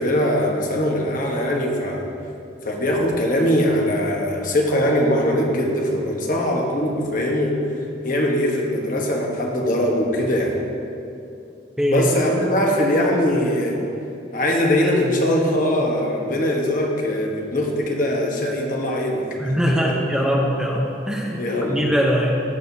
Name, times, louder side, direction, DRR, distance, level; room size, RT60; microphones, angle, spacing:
voice 1, 0.0-2.1 2.6-7.6 8.0-10.6 11.9-13.8 14.3-19.9 21.4-21.8, left 1 dB, 50° left, 0 dB, 1.2 m, -21 dB
voice 2, 19.4-21.4 21.7-22.4, equal, 5° right, -2 dB, 0.7 m, -21 dB
16.0 x 6.4 x 2.8 m, 2.6 s
head